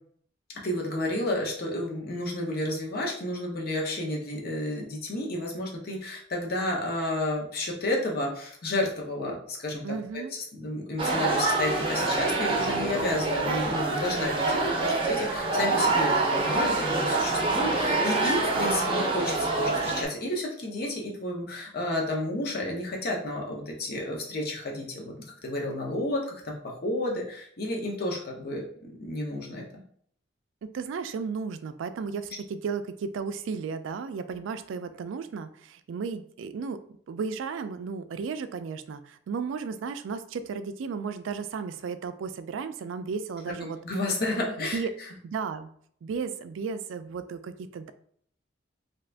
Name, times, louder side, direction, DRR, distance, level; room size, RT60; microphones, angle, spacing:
voice 1, 0.6-25.1 25.4-26.5 26.8-29.8 43.6-44.8, left 1 dB, 55° left, -1 dB, 0.8 m, -31 dB
voice 2, 9.8-10.3 30.6-36.8 37.1-43.8 44.6-44.9 45.2-45.7 46.0-47.9, right 5 dB, 80° right, 11 dB, 0.3 m, -34 dB
sound 1, 11.0-20.0, right 3 dB, 30° right, 0.6 m, -26 dB
2.8 x 2.4 x 3.3 m, 0.62 s
head